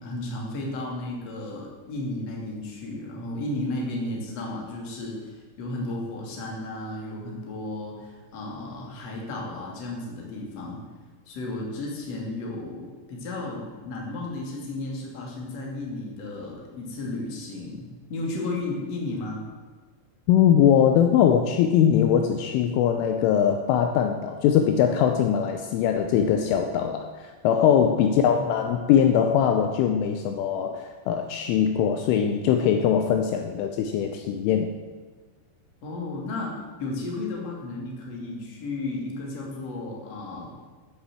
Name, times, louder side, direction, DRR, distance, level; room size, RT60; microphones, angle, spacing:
voice 1, 0.0-10.8 11.3-17.8 18.1-19.4 28.1-28.5 35.8-40.6, left 2 dB, 40° left, -1 dB, 2.8 m, -33 dB
voice 2, 20.3-34.7, left 8 dB, 80° left, 6 dB, 3.1 m, -21 dB
11.5 x 8.8 x 7.6 m, 1.4 s
omnidirectional pair, 5.9 m